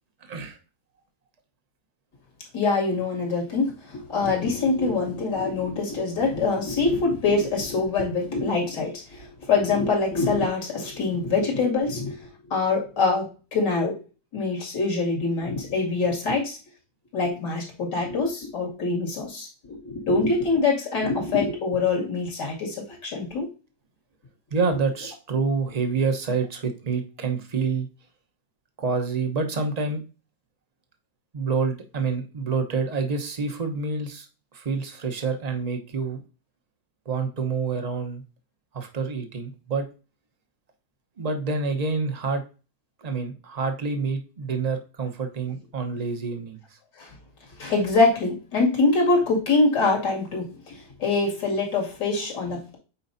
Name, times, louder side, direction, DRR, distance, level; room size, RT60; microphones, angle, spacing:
voice 1, 0.2-0.6 24.5-27.9 28.8-30.0 31.3-34.3 34.5-36.2 37.0-38.2 38.7-39.8 41.2-42.4 43.0-46.8, right 4 dB, 30° right, 5 dB, 0.9 m, -27 dB
voice 2, 2.5-12.2 12.5-14.0 14.3-16.6 17.1-23.5 47.0-47.1 47.6-52.8, left 3 dB, 80° left, -1 dB, 3.0 m, -24 dB
8.3 x 4.7 x 2.7 m, 0.33 s
omnidirectional pair, 1.8 m